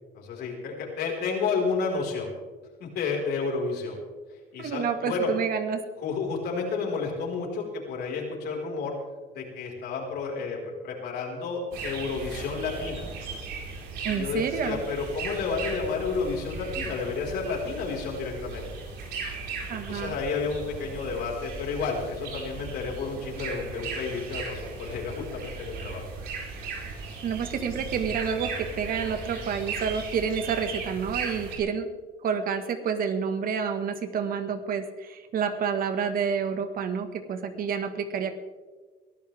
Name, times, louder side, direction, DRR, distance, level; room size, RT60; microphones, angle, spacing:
voice 1, 0.1-2.3 2.8-4.0 4.5-5.3 6.0-8.9 9.3-13.1 14.1-18.7 19.7-26.0, left 4 dB, 75° left, -1 dB, 4.9 m, -31 dB
voice 2, 4.6-5.8 6.1-6.2 14.0-14.8 19.7-20.1 27.2-31.9 32.2-38.4, right 6 dB, 60° right, 8 dB, 1.7 m, -29 dB
sound 1, 11.7-31.6, right 4 dB, 80° right, 4.8 m, -37 dB
22.5 x 14.5 x 3.6 m, 1.4 s
cardioid pair, 110°, 17 cm